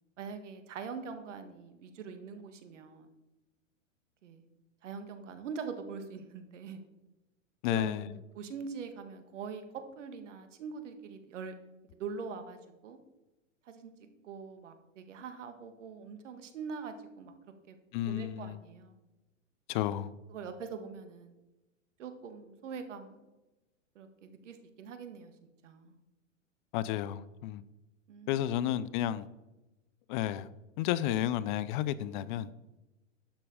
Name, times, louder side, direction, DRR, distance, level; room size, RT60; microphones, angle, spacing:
voice 1, 0.2-3.1 4.2-4.4 4.8-6.8 7.7-9.6 10.0-11.5 11.9-13.0 13.7-13.9 14.2-17.3 17.7-17.8 18.1-19.0 20.3-21.3 22.0-23.2 24.0-25.3 25.6-26.0 28.1-28.6, right 5 dB, 65° right, 1.8 m, -43 dB
voice 2, 7.6-8.1 17.9-18.6 19.7-20.1 26.7-27.6 28.3-29.3 30.1-30.5 30.8-32.5, left 12 dB, 40° left, 0.6 m, -32 dB
11.5 x 6.9 x 5.0 m
hypercardioid pair, 115°, 39 cm